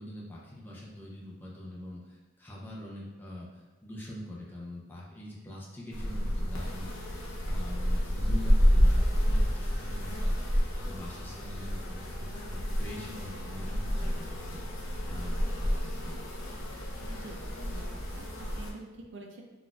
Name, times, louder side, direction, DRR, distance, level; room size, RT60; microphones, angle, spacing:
voice 1, 0.0-16.5, left 1 dB, 10° left, -5 dB, 0.5 m, -44 dB
sound 1, 5.9-18.7, equal, 85° left, 0.6 m, -29 dB
voice 2, 17.1-19.4, right 2 dB, 60° right, 2 dB, 0.4 m, -47 dB
3.9 x 2.4 x 2.3 m, 1.3 s
head